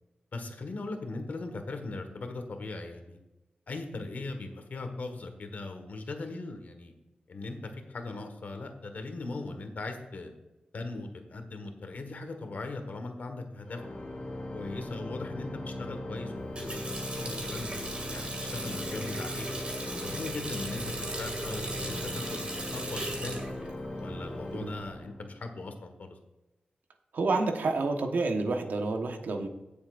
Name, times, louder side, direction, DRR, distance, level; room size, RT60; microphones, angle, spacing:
voice 1, 0.3-3.2 3.7-6.9 7.3-10.3 10.7-13.8 14.5-16.8 17.1-17.7 18.1-19.5 20.0-20.8 21.1-23.4 24.0-26.2, left 3 dB, 65° left, 6 dB, 1.4 m, -39 dB
Organ, 13.7-25.5, left 1 dB, 40° left, 1.7 m, -39 dB
Water tap faucet, 16.4-24.8, right 1 dB, 40° right, 2.2 m, -38 dB
voice 2, 27.1-29.5, right 3 dB, 85° right, 4 dB, 1.2 m, -29 dB
17.0 x 7.1 x 2.5 m, 0.99 s
wide cardioid pair, 130°, 3 cm